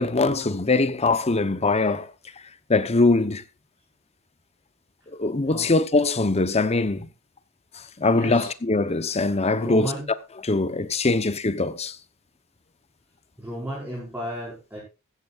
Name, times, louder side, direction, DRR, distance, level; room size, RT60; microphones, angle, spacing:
voice 1, 0.0-2.1 2.7-3.4 5.2-7.1 8.0-9.9 10.4-12.0, left 3 dB, 30° left, 0.9 m, -22 dB
voice 2, 8.1-8.5 9.6-10.1 13.4-14.8, equal, 10° right, 5.3 m, -33 dB
15.0 x 13.5 x 2.5 m
head